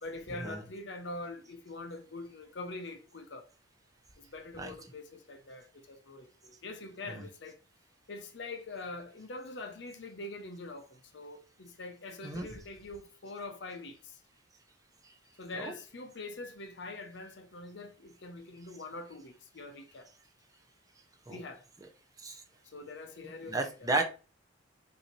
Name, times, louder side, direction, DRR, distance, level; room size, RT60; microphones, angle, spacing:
voice 1, 0.0-3.5 4.2-7.6 8.1-14.2 15.4-20.1 21.3-21.6 22.6-23.9, left 2 dB, 60° left, 0.6 m, -44 dB
voice 2, 23.5-24.0, right 2 dB, 15° right, 0.5 m, -32 dB
5.5 x 2.7 x 3.0 m
head